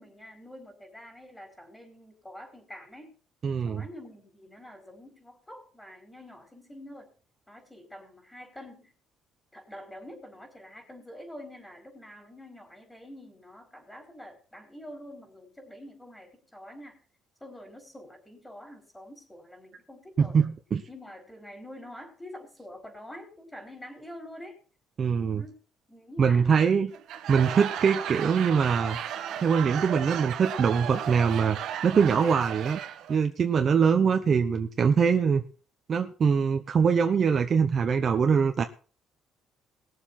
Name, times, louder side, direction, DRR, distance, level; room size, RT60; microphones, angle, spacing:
voice 1, 0.0-3.1 3.6-7.1 7.5-8.9 9.5-17.0 17.4-20.4 20.9-24.6 25.3-25.6 25.9-26.8, left 1 dB, 10° left, 3 dB, 4.7 m, -46 dB
voice 2, 3.4-3.8 20.2-20.8 25.0-25.4 26.2-26.9 27.3-29.0 29.4-31.6 31.8-32.8 33.1-35.4 35.9-38.6, right 6 dB, 35° right, 5 dB, 0.9 m, -23 dB
Laughter / Crowd, 26.9-33.2, right 9 dB, 60° right, 1.3 m, -35 dB
20.5 x 7.3 x 4.4 m, 0.38 s
cardioid pair, 150°, 0 cm